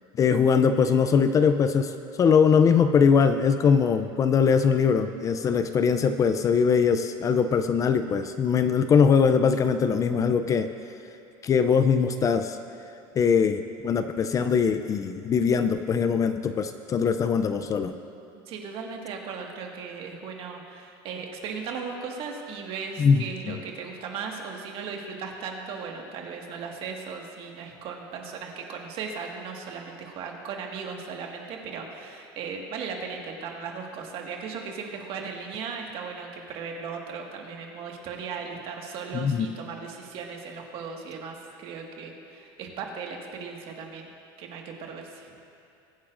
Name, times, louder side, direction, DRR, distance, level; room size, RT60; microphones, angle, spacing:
voice 1, 0.2-1.9 2.2-10.7 11.4-12.6 13.2-17.9 23.0-23.6 39.1-39.5, left 6 dB, 30° left, 9 dB, 0.5 m, -21 dB
voice 2, 18.5-44.1 44.4-45.4, right 5 dB, 50° right, 1 dB, 1.8 m, -37 dB
22.5 x 9.6 x 2.6 m, 2.7 s
supercardioid pair, 125°, 12 cm